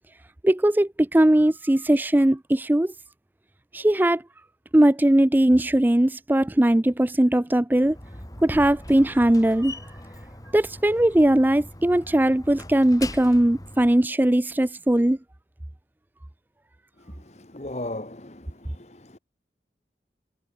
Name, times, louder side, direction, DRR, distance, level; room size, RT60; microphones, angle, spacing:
voice 1, 0.4-2.9 3.7-4.2 4.7-8.0 8.4-9.7 10.5-15.2, right 1 dB, 10° right, 0.4 m, -19 dB
Slam, 7.8-14.0, left 1 dB, 20° left, 6.3 m, -41 dB
voice 2, 17.0-19.2, left 1 dB, 40° left, 1.3 m, -37 dB
head